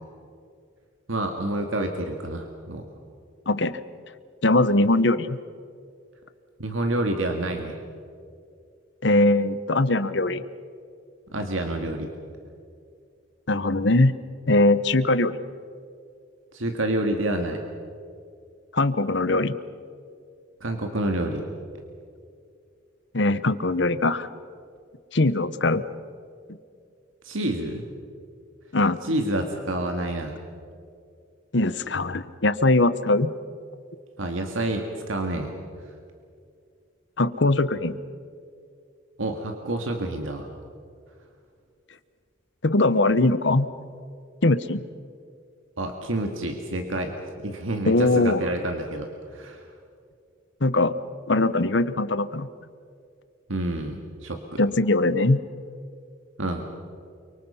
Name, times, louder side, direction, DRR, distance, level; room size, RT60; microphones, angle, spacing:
voice 1, 1.1-2.9 6.6-7.8 11.3-12.1 16.5-17.6 20.6-21.4 27.2-27.8 29.0-30.4 34.2-35.5 39.2-40.5 45.8-47.1 47.4-49.6 53.5-54.6 56.4-56.6, right 1 dB, 90° right, 4 dB, 2.0 m, -28 dB
voice 2, 3.5-3.8 4.4-5.4 9.0-10.4 13.5-14.1 14.5-15.4 18.7-19.5 23.1-24.3 25.1-25.8 28.7-29.0 31.5-33.3 37.2-38.0 42.6-43.7 44.4-44.8 47.9-48.4 50.6-51.0 51.3-52.5 54.6-55.4, left 2 dB, 60° left, 13 dB, 1.0 m, -21 dB
29.5 x 24.0 x 5.7 m, 2.3 s
head